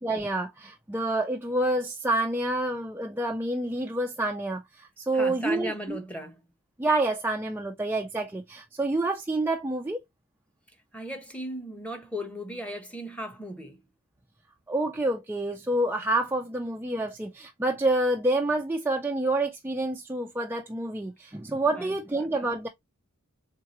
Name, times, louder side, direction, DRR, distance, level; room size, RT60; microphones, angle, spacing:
voice 1, 0.0-6.0 6.8-10.0 14.7-22.7, right 2 dB, 10° right, 0.4 m, -28 dB
voice 2, 5.1-6.4 10.9-13.8 21.7-21.9, equal, 5° left, 0.9 m, -36 dB
4.6 x 3.6 x 2.9 m
head